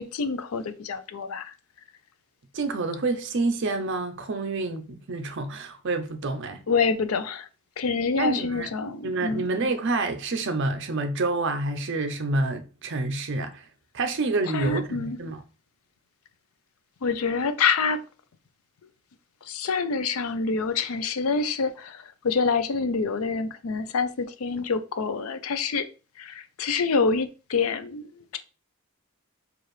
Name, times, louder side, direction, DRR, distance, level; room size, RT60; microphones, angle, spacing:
voice 1, 0.0-1.5 6.7-7.5 7.8-9.5 14.5-15.2 17.0-18.0 19.4-25.9 26.2-28.1, left 4 dB, 70° left, 0.4 m, -26 dB
voice 2, 2.5-6.6 8.2-8.7 9.0-13.6 13.9-15.4, right 3 dB, 55° right, 0.6 m, -28 dB
4.6 x 2.4 x 3.1 m
head